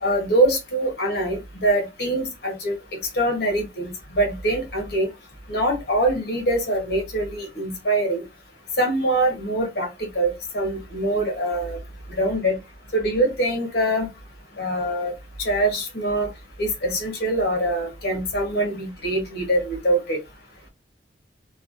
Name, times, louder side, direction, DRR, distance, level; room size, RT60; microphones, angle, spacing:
voice 1, 0.0-2.7 3.1-5.1 5.5-8.2 8.8-11.8 12.2-12.6 12.9-14.1 14.6-15.1 15.4-16.3 16.6-20.2, right 1 dB, 60° left, 1.1 m, -23 dB
3.1 x 2.3 x 2.5 m
head